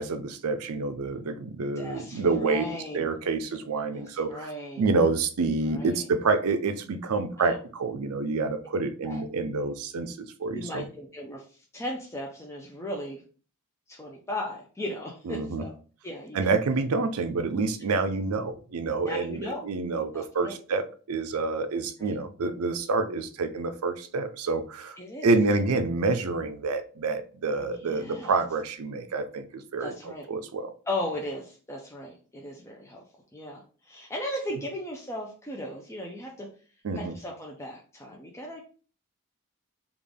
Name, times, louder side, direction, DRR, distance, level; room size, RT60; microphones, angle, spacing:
voice 1, 0.0-2.7 2.9-4.5 4.8-10.8 15.3-15.7 16.3-25.0 25.2-29.9 30.3-30.7 36.8-37.1, right 3 dB, 70° right, 9 dB, 0.5 m, -28 dB
voice 2, 1.8-3.1 3.9-4.8 5.6-6.1 7.4-7.6 9.0-9.2 10.4-13.2 13.9-15.7 16.0-16.4 19.0-19.6 20.1-20.6 22.0-22.1 25.0-25.3 27.6-28.4 29.8-30.3 30.9-33.0 33.3-36.5 36.9-38.7, left 1 dB, 10° left, -1 dB, 0.5 m, -37 dB
3.5 x 2.4 x 3.4 m, 0.39 s
head